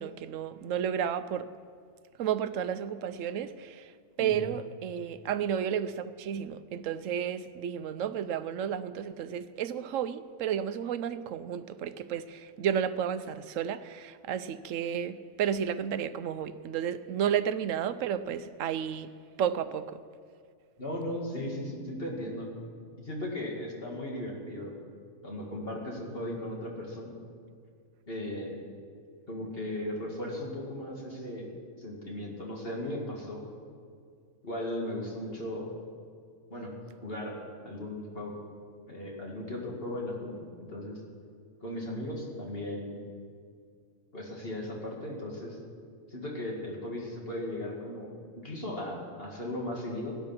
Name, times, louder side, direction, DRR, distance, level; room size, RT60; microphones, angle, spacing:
voice 1, 0.0-1.5 2.2-3.9 4.2-19.1 19.4-20.0, right 8 dB, 75° right, 1.0 m, -32 dB
voice 2, 4.2-4.5 20.8-22.5 23.0-24.8 25.2-27.2 28.1-28.6 29.3-31.5 31.8-33.4 34.4-35.7 36.5-36.7 37.0-37.4 37.6-38.3 38.9-41.0 41.6-43.0 44.1-45.6 46.1-50.1, left 1 dB, 45° left, 2.7 m, -37 dB
17.5 x 10.5 x 6.0 m
omnidirectional pair, 1.4 m